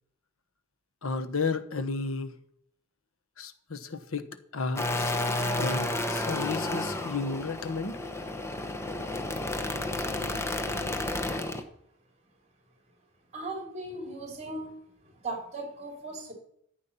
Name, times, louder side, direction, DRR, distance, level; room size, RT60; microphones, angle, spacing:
voice 1, 1.0-2.3 3.4-5.2 5.5-8.0, left 4 dB, 80° left, 9 dB, 1.2 m, -33 dB
sound 1, 4.8-11.6, left 2 dB, 15° left, 1.0 m, -31 dB
voice 2, 13.3-14.8 15.2-16.3, right 2 dB, 30° right, 1 dB, 3.7 m, -37 dB
14.0 x 8.6 x 5.6 m, 0.70 s
head